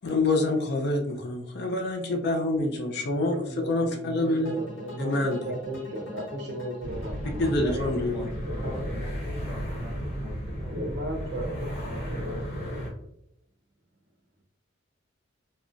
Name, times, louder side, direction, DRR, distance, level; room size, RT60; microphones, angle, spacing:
voice 1, 0.0-3.4 3.7-4.6 5.0-5.4 7.4-8.3, left 2 dB, 55° left, 4 dB, 0.4 m, -26 dB
voice 2, 3.1-7.4 7.7-7.8 8.1-9.0 10.7-12.9, right 1 dB, 55° right, 2 dB, 0.6 m, -36 dB
sound 1, 4.4-9.5, left 2 dB, 75° left, 0.9 m, -46 dB
sound 2, 6.8-12.9, equal, 35° left, 1.0 m, -34 dB
voice 3, 7.2-10.8, left 1 dB, 15° right, -5 dB, 0.9 m, -41 dB
3.7 x 2.1 x 2.4 m, 0.77 s
head